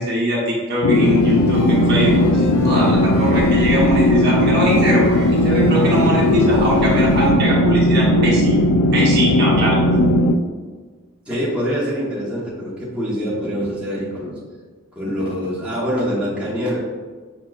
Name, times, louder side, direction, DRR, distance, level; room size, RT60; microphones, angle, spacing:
voice 1, 0.0-8.6 8.9-9.8, equal, 50° right, -4 dB, 0.9 m, -21 dB
sound 1, 0.8-10.4, left 1 dB, 85° left, 0.3 m, -17 dB
sound 2, 0.9-7.3, equal, 70° left, 1.0 m, -28 dB
voice 2, 11.3-14.3 15.0-16.8, equal, 5° right, -9 dB, 0.9 m, -24 dB
5.9 x 2.8 x 2.3 m, 1.4 s
head